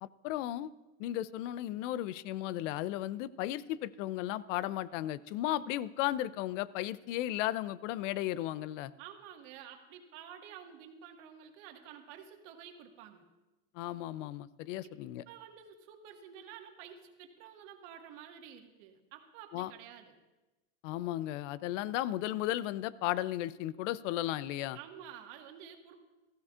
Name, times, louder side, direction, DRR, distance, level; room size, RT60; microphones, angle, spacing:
voice 1, 0.0-0.7 1.0-8.9 13.7-15.2 19.5-19.7 20.8-24.8, left 14 dB, 65° left, 18 dB, 0.6 m, -35 dB
voice 2, 9.0-13.2 14.8-14.9 15.3-20.2 24.7-25.9, right 9 dB, 60° right, 4 dB, 1.8 m, -50 dB
15.0 x 14.5 x 2.5 m, 1.1 s
supercardioid pair, 115°, 40 cm